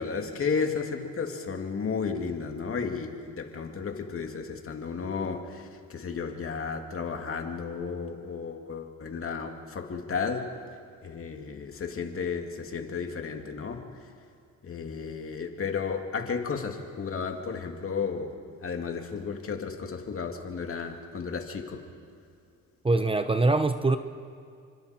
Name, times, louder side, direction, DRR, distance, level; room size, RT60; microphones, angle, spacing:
voice 1, 0.0-10.5 11.0-13.9 14.6-18.4 18.6-21.8, left 5 dB, 45° left, 3 dB, 2.7 m, -33 dB
voice 2, 22.8-24.0, right 2 dB, 20° right, 9 dB, 0.9 m, -23 dB
29.5 x 25.5 x 4.5 m, 2.3 s
cardioid pair, 90°, 30 cm